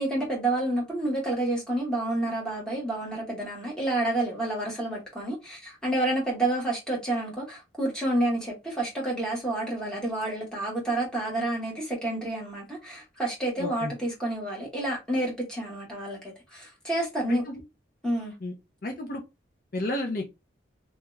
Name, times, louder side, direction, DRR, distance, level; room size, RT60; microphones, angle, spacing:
voice 1, 0.0-17.5 18.0-18.3, right 1 dB, 5° left, 1.0 m, -29 dB
voice 2, 13.6-13.9 17.3-17.6 18.4-18.5 18.8-19.2 19.7-20.3, left 1 dB, 50° left, 0.5 m, -31 dB
2.8 x 2.3 x 3.0 m
head